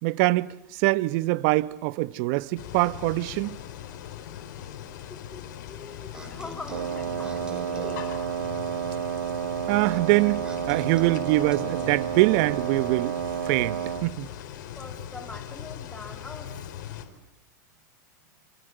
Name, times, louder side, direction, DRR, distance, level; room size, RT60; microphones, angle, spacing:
voice 1, 0.0-3.6 9.7-13.2 13.4-14.3, right 20 dB, 55° right, 1.1 m, -24 dB
sound 1, 2.6-17.1, left 10 dB, 65° left, 4.3 m, -40 dB
voice 2, 5.1-5.4 5.7-8.0 14.8-16.5, left 3 dB, 10° left, 3.0 m, -43 dB
sound 2, 6.1-8.1 10.4-12.1, right 1 dB, 10° right, 5.4 m, -42 dB
Wind instrument woodwind instrument, 6.7-14.1, right 9 dB, 85° right, 1.2 m, -31 dB
27.5 x 25.5 x 8.1 m
hypercardioid pair, 110°, 10 cm